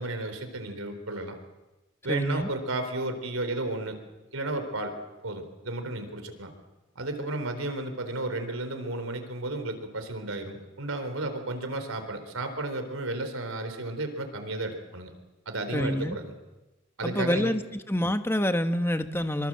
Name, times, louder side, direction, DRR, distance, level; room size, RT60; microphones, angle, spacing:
voice 1, 0.0-1.4 2.0-4.0 4.3-5.0 5.2-6.5 7.0-15.1 15.5-16.4 17.0-17.5, right 2 dB, 90° right, 7 dB, 4.0 m, -33 dB
voice 2, 2.1-2.5 15.7-16.2 17.0-17.6 17.9-19.5, left 1 dB, 10° left, 8 dB, 1.2 m, -27 dB
25.5 x 25.0 x 7.7 m, 1.1 s
head